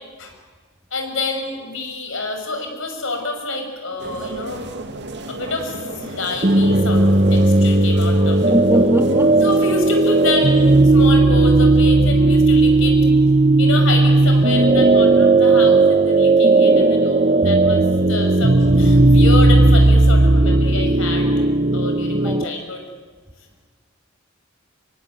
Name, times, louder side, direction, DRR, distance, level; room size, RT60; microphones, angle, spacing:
voice 1, 0.9-4.6 5.3-8.5 9.4-13.0 13.6-17.8 18.1-21.3 21.7-22.8, left 2 dB, 70° left, 4 dB, 6.4 m, -27 dB
sound 1, 4.0-10.8, right 2 dB, 60° right, 2.4 m, -35 dB
sound 2, 6.4-22.4, right 2 dB, 35° right, 0.9 m, -14 dB
voice 2, 8.5-9.4 22.2-22.5, right 1 dB, 10° right, 5 dB, 1.9 m, -20 dB
25.5 x 23.5 x 9.3 m, 1.4 s
head